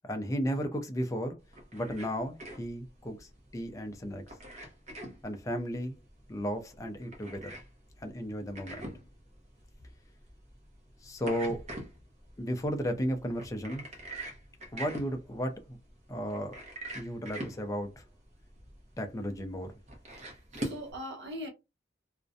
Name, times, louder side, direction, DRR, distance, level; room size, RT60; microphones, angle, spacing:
voice 1, 0.0-1.4 1.7-4.2 5.2-6.0 6.3-7.6 8.0-8.9 11.0-11.7 12.4-13.9 14.7-15.8 16.1-16.6 16.9-18.0 19.0-19.7, equal, 15° left, 0.4 m, -34 dB
sound 1, 1.4-20.9, right 1 dB, 35° right, 0.7 m, -45 dB
voice 2, 20.2-21.5, equal, 65° right, 0.9 m, -41 dB
2.4 x 2.1 x 2.5 m
head